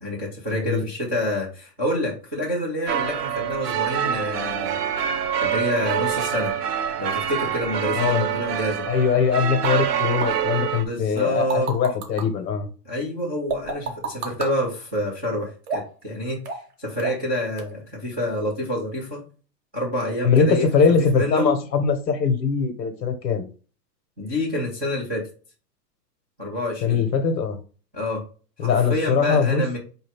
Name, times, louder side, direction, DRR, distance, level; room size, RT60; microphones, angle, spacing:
voice 1, 0.0-4.8 5.4-6.5 7.0-8.8 10.7-11.7 12.8-19.2 19.7-20.6 21.1-21.4 24.2-25.2 26.4-27.0 27.9-28.2 28.6-29.8, left 1 dB, 5° right, 0.3 m, -27 dB
sound 1, 2.9-10.9, right 9 dB, 70° right, 0.8 m, -26 dB
voice 2, 8.8-12.7 20.2-23.4 26.8-27.6 28.6-29.6, left 6 dB, 85° left, 1.3 m, -21 dB
sound 2, 9.6-9.7 10.2-10.3 11.2-12.2 13.5-14.5 15.7-16.0 16.4-16.7 17.0-17.3 17.6-17.7, right 4 dB, 25° right, 1.0 m, -29 dB
4.7 x 2.7 x 3.4 m
hypercardioid pair, 145°, 49 cm